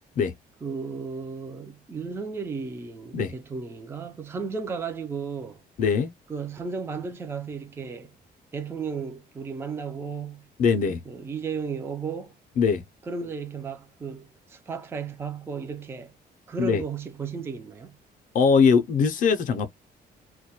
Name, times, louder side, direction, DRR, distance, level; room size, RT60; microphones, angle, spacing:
voice 1, 0.6-5.6 6.3-8.1 8.5-10.5 11.1-12.3 13.1-16.1 16.5-17.9, right 5 dB, 15° right, 0.3 m, -34 dB
voice 2, 5.8-6.1 10.6-11.0 12.6-12.8 16.6-16.8 18.3-19.7, left 6 dB, 50° left, 0.5 m, -21 dB
2.2 x 2.1 x 2.8 m
cardioid pair, 155°, 17 cm